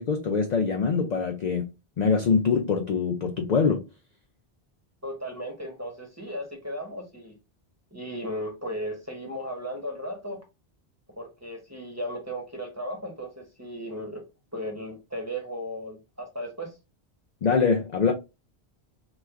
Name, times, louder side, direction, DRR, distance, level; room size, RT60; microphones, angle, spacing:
voice 1, 0.0-1.7 2.0-3.9 17.4-18.1, left 5 dB, 55° left, 0.5 m, -24 dB
voice 2, 5.0-7.3 7.9-10.4 11.2-14.2 14.5-16.7, equal, 15° right, 0.8 m, -35 dB
3.0 x 2.2 x 3.5 m
omnidirectional pair, 1.1 m